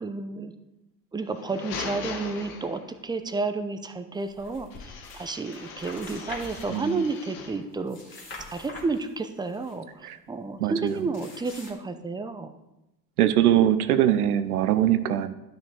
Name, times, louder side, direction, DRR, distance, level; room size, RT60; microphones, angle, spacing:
voice 1, 0.0-0.5 1.1-8.0 8.5-12.5, right 3 dB, 10° right, 9 dB, 0.6 m, -31 dB
sound 1, 1.2-3.1 4.7-7.7, left 5 dB, 55° left, 1.7 m, -40 dB
sound 2, 4.3-5.3 5.5-7.2 7.7-9.8 10.9-11.7, left 2 dB, 25° left, 2.9 m, -44 dB
voice 2, 6.7-7.0 10.0-10.2 10.6-11.1 13.2-15.3, right 11 dB, 60° right, 12 dB, 0.8 m, -22 dB
12.0 x 6.1 x 5.0 m, 0.94 s
figure-of-eight pair, 80°, 50 cm